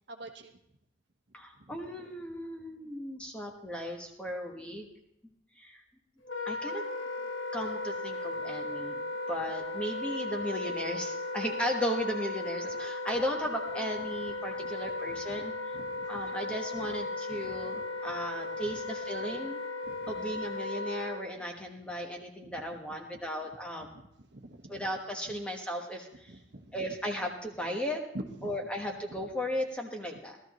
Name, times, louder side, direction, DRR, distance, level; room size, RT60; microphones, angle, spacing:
voice 1, 0.1-0.6 1.5-1.8 14.6-15.4 15.7-16.3 16.7-16.9 17.3-18.1 18.6-18.8 19.8-20.2 22.4-22.8 23.1-23.2 23.9-24.9 25.3-25.4 26.3-26.9 28.1-28.6 29.1-29.2, right 1 dB, 55° right, 4 dB, 1.1 m, -47 dB
voice 2, 1.3-4.9 5.6-5.8 6.4-6.8 7.5-9.0 9.3-15.5 16.1-19.6 20.1-24.0 24.7-26.4 26.7-28.0 28.4-30.4, equal, 5° left, 1 dB, 1.2 m, -36 dB
Wind instrument woodwind instrument, 6.2-21.2, left 2 dB, 80° left, 1.4 m, -36 dB
16.5 x 13.0 x 3.1 m, 0.78 s
head